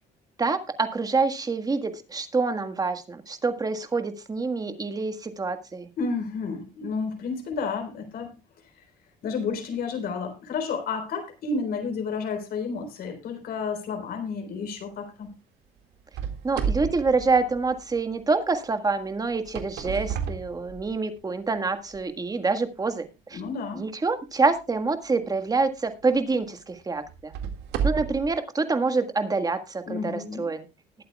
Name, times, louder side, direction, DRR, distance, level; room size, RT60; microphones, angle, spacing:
voice 1, 0.4-5.9 16.4-23.4 23.7-27.3 27.8-30.7, right 4 dB, 20° right, 8 dB, 1.6 m, -26 dB
voice 2, 6.0-8.3 9.2-15.3 23.3-23.8 29.9-30.4, left 5 dB, 65° left, 5 dB, 4.0 m, -31 dB
sound 1, 16.1-18.1 19.3-21.2 21.9-22.0 22.7-22.8 25.4-25.6 26.1-26.2 27.1-28.3, right 6 dB, 85° right, 2.0 m, -31 dB
20.0 x 8.8 x 2.3 m, 0.27 s
cardioid pair, 110°, 17 cm